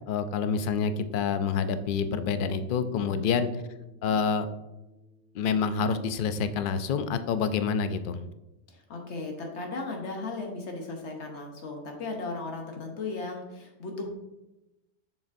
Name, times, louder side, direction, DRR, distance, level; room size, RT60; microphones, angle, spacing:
voice 1, 0.1-3.5 4.0-4.5 5.3-8.2, left 6 dB, 60° left, 10 dB, 0.6 m, -27 dB
Bass guitar, 2.0-8.2, right 1 dB, 25° left, 0.9 m, -54 dB
voice 2, 3.0-3.4 8.7-14.1, left 3 dB, 85° left, 2 dB, 1.3 m, -36 dB
7.1 x 6.4 x 2.6 m, 0.96 s
omnidirectional pair, 1.1 m